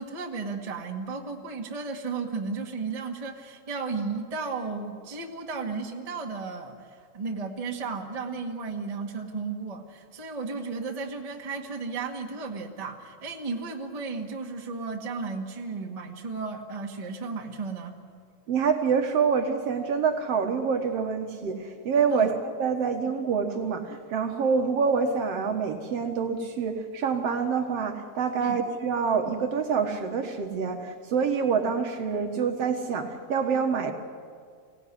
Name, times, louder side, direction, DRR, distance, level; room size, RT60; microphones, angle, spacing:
voice 1, 0.0-18.0 22.1-22.3 28.4-28.6, right 4 dB, 15° right, 1 dB, 1.4 m, -34 dB
voice 2, 18.5-33.9, right 6 dB, 60° right, 5 dB, 2.3 m, -26 dB
24.0 x 17.0 x 9.8 m, 2.1 s
omnidirectional pair, 3.4 m